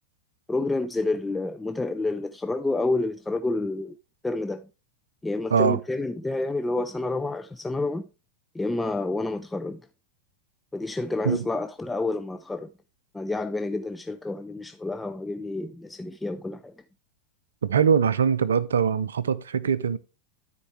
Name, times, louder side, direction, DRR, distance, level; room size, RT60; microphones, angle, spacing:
voice 1, 0.5-3.9 4.2-4.7 5.2-8.1 8.5-9.8 10.7-12.7 13.1-16.7, left 2 dB, 10° left, 0.4 m, -29 dB
voice 2, 17.6-20.0, right 6 dB, 65° right, 0.5 m, -22 dB
12.5 x 4.5 x 3.3 m
figure-of-eight pair, 90°, 0 cm